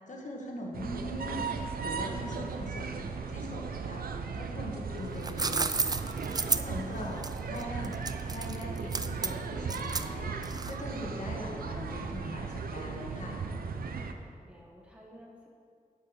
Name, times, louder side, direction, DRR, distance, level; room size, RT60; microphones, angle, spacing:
voice 1, 0.1-1.5 1.8-4.1 4.3-6.0 6.6-8.0 8.3-10.4 10.6-13.4, left 1 dB, 55° left, -1 dB, 1.8 m, -41 dB
sound 1, 0.7-14.1, right 5 dB, 85° right, 0.6 m, -36 dB
sound 2, 5.0-11.0, right 4 dB, 25° right, 0.4 m, -33 dB
voice 2, 6.3-6.7 13.6-15.5, equal, 5° right, -2 dB, 1.5 m, -54 dB
9.7 x 6.8 x 5.2 m, 2.3 s
cardioid pair, 70°, 15 cm